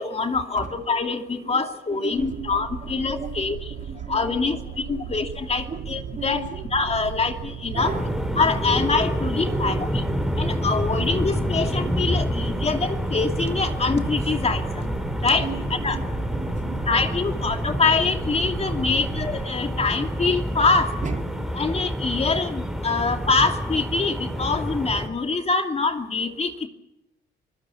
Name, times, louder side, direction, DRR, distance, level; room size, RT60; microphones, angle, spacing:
voice 1, 0.0-3.6 4.1-4.6 4.9-6.4 6.7-7.9 8.4-10.0 10.4-14.9 15.2-15.5 15.8-16.0 16.9-20.9 21.6-26.7, left 4 dB, 30° left, 2.7 m, -24 dB
voice 2, 1.9-5.2 5.7-5.9 6.1-6.6 7.7-8.1 9.4-10.1 13.4-13.5 15.4-17.2 19.1-19.2 20.7-21.7, right 4 dB, 40° right, 3.1 m, -37 dB
sound 1, 2.2-19.4, right 8 dB, 75° right, 1.6 m, -37 dB
sound 2, 7.8-25.1, equal, ahead, 4.7 m, -28 dB
24.5 x 20.5 x 7.1 m
cardioid pair, 90°, 20 cm